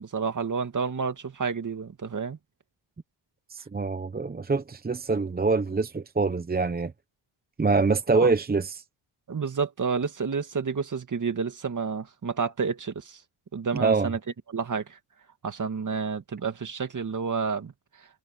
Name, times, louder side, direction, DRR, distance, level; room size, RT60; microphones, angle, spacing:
voice 1, 0.0-2.4 8.2-8.3 9.3-13.2 13.5-14.2 14.5-15.0 15.4-17.7, right 5 dB, 35° right, 2.3 m, -30 dB
voice 2, 3.5-6.9 7.6-8.8 13.7-14.1, right 4 dB, 20° right, 0.9 m, -25 dB
cardioid pair, 95°, 49 cm